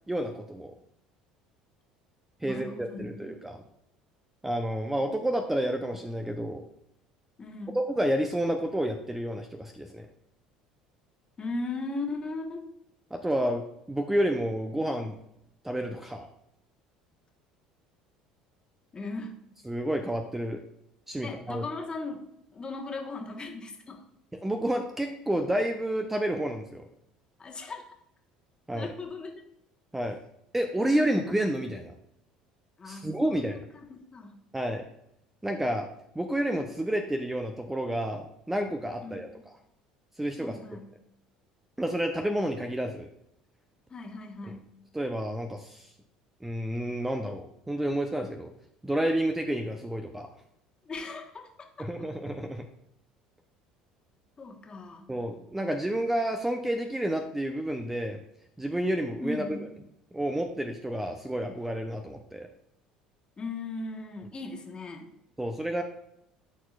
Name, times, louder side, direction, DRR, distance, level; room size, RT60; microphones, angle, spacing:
voice 1, 0.1-0.7 2.4-3.6 4.4-6.6 7.7-10.1 13.1-15.2 15.6-16.3 19.6-20.6 21.1-21.6 24.4-26.8 28.7-28.9 29.9-30.2 30.5-31.9 32.9-33.6 34.5-34.8 35.4-35.9 36.1-39.3 40.2-40.6 41.8-43.1 44.5-44.6 44.9-45.9 46.4-48.5 48.8-50.3 51.8-52.6 55.1-58.2 58.6-59.6 60.1-62.5 65.4-65.8, right 1 dB, 10° right, 5 dB, 0.7 m, -30 dB
voice 2, 2.4-3.4 7.4-7.8 11.4-12.6 18.9-19.4 21.2-22.2 22.5-24.0 27.4-27.8 28.7-29.3 30.8-31.3 32.8-34.4 39.0-39.4 40.4-40.9 43.9-44.7 50.8-51.7 54.4-55.1 59.2-59.6 63.4-65.1, left 3 dB, 30° left, 2 dB, 1.4 m, -38 dB
12.0 x 4.6 x 2.4 m, 0.77 s
figure-of-eight pair, 60°, 3 cm